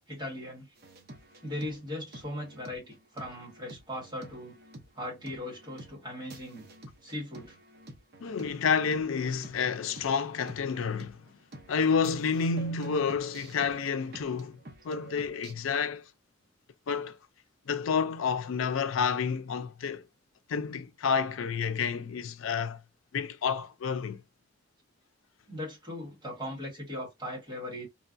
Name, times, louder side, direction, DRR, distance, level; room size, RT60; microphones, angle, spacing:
voice 1, 0.1-0.7 1.4-4.6 4.9-6.7 7.0-7.6 25.5-27.9, left 1 dB, 20° right, 1.7 m, -38 dB
sound 1, 0.8-15.5, right 2 dB, 50° right, 0.6 m, -50 dB
voice 2, 8.2-11.2 11.7-14.6 14.8-16.0 16.9-17.2 17.7-20.0 20.5-22.8 23.1-24.2, left 6 dB, 90° left, 0.4 m, -29 dB
3.2 x 2.3 x 2.5 m
head